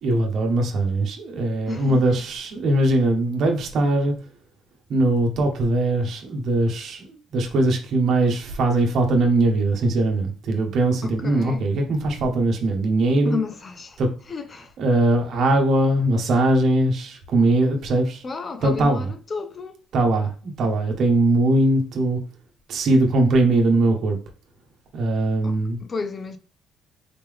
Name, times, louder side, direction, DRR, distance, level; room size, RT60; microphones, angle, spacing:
voice 1, 0.0-4.1 4.9-13.4 14.0-14.1 14.8-18.2 18.6-19.1 19.9-22.2 22.7-24.2 24.9-25.8, right 2 dB, 45° right, 1.1 m, -21 dB
voice 2, 1.7-2.2 11.0-11.6 13.2-14.0 14.3-14.7 18.2-19.8 25.4-26.4, left 4 dB, 25° left, 0.5 m, -32 dB
4.1 x 3.7 x 3.5 m
cardioid pair, 160°, 0 cm